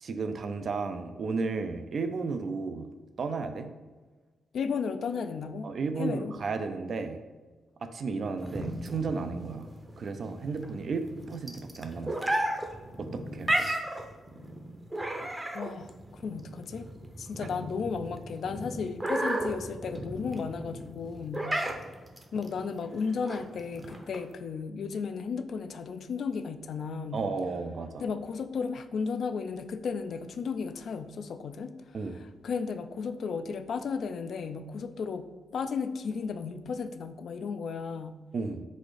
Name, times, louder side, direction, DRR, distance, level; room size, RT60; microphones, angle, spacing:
voice 1, 0.0-2.9 3.2-3.7 5.6-7.2 7.8-9.7 10.0-12.1 13.0-13.7 27.1-28.0 31.9-32.2 38.3-38.6, right 4 dB, 60° right, 8 dB, 0.4 m, -33 dB
voice 2, 4.5-5.7 6.0-6.3 15.5-15.9 16.2-16.9 17.2-21.5 22.3-27.3 28.0-38.2, left 5 dB, 70° left, 10 dB, 0.3 m, -34 dB
sound 1, 8.4-24.3, right 1 dB, 15° right, 0.6 m, -34 dB
4.1 x 2.5 x 4.7 m, 1.3 s
cardioid pair, 65°, 0 cm